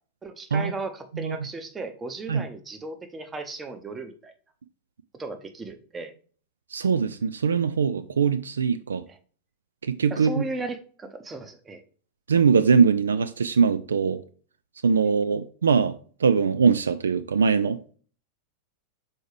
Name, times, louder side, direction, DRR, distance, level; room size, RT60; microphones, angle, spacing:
voice 1, 0.2-4.3 5.1-6.1 9.1-9.2 10.1-11.8, right 3 dB, 15° right, 0.9 m, -36 dB
voice 2, 6.7-9.0 9.8-10.4 12.3-14.2 14.8-17.8, right 5 dB, 70° right, 0.3 m, -22 dB
6.2 x 4.5 x 3.3 m
figure-of-eight pair, 90°, 0 cm